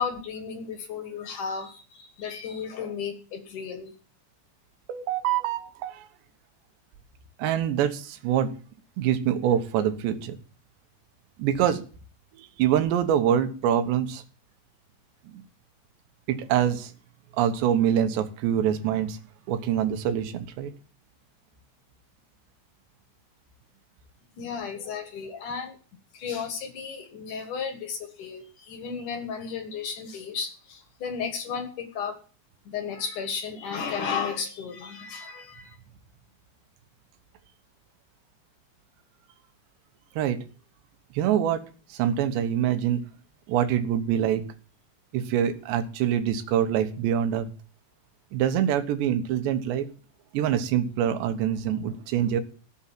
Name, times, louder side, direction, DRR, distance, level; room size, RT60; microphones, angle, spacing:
voice 1, 0.0-3.9 24.4-25.8 26.1-32.2 32.7-35.8, left 6 dB, 60° left, 7 dB, 2.6 m, -34 dB
voice 2, 4.9-6.1 7.4-8.5 9.0-10.4 11.4-11.8 12.4-14.2 15.3-15.4 16.3-16.9 17.4-19.2 19.5-20.7 40.2-40.4 41.2-41.6 41.9-43.0 43.5-44.5 45.1-47.5 48.3-49.9 50.3-52.4, right 10 dB, 85° right, 9 dB, 3.4 m, -25 dB
17.5 x 7.3 x 7.5 m, 0.39 s
omnidirectional pair, 4.9 m